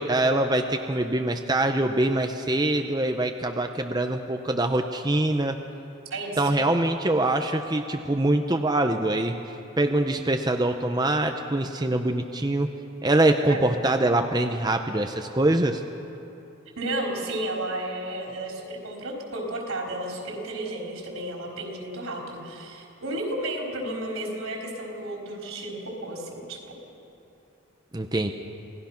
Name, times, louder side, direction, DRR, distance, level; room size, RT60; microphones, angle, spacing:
voice 1, 0.0-5.6 6.4-9.3 9.8-12.7 13.0-15.8 27.9-28.3, right 1 dB, 20° right, 5 dB, 0.7 m, -24 dB
voice 2, 16.8-26.6, right 1 dB, 85° right, -1 dB, 4.5 m, -32 dB
27.5 x 18.5 x 5.8 m, 3.0 s
head